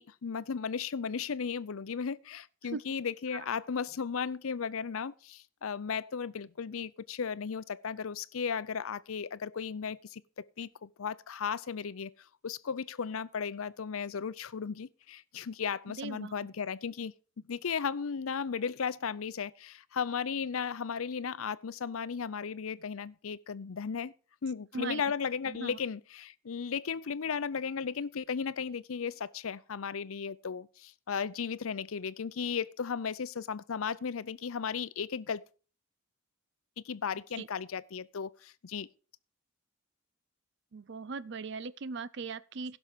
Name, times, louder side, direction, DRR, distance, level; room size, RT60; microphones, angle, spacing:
voice 1, 0.0-12.1 12.4-17.1 17.5-24.1 24.4-35.4 36.8-38.9, left 6 dB, 85° left, 0.6 m, -35 dB
voice 2, 15.9-16.4 24.7-25.0 25.4-25.8 37.4-37.5 40.7-42.8, right 4 dB, 55° right, 0.5 m, -39 dB
16.0 x 6.2 x 5.0 m
head